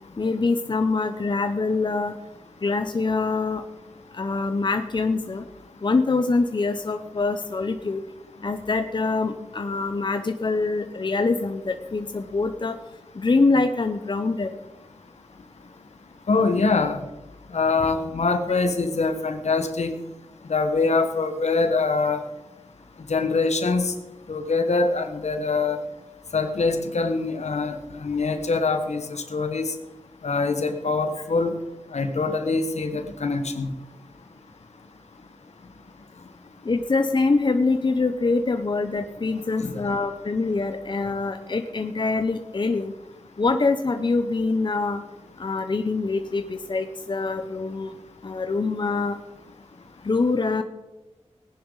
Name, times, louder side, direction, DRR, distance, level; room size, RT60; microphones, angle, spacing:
voice 1, 0.2-2.2 2.6-3.6 4.1-5.4 5.8-8.0 8.4-12.7 13.2-14.5 36.7-42.9 43.4-45.0 45.4-47.9 48.2-49.2 50.0-50.6, left 3 dB, 40° left, 7 dB, 0.8 m, -24 dB
voice 2, 16.3-17.0 17.5-20.0 20.5-22.2 23.1-23.9 24.3-25.8 26.3-29.7 30.2-31.6 31.9-33.7 39.6-39.8, left 3 dB, 70° left, 7 dB, 1.4 m, -24 dB
18.5 x 10.0 x 4.0 m, 1.1 s
wide cardioid pair, 70°, 12 cm